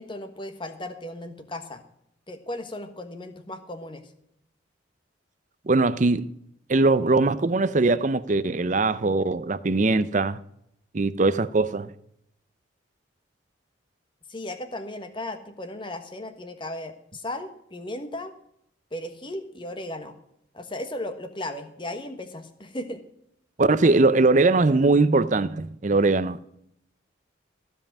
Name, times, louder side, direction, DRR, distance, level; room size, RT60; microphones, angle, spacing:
voice 1, 0.0-1.8 2.3-4.1 14.3-18.3 18.9-20.1 20.5-23.0, left 1 dB, 25° left, 1.2 m, -36 dB
voice 2, 5.7-6.3 6.7-10.4 10.9-11.9 23.6-26.4, right 3 dB, 40° right, 0.5 m, -21 dB
15.0 x 5.4 x 8.9 m
head